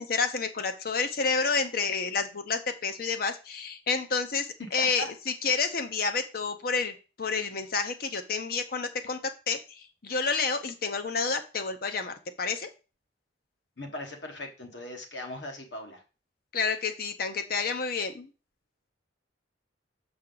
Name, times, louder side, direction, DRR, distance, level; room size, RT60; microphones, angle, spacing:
voice 1, 0.0-9.2 9.5-12.7 16.5-18.3, left 4 dB, 50° left, 8 dB, 0.8 m, -29 dB
voice 2, 4.8-5.1 13.8-16.0, left 1 dB, 65° left, 3 dB, 1.5 m, -39 dB
6.1 x 5.8 x 3.9 m, 0.32 s
head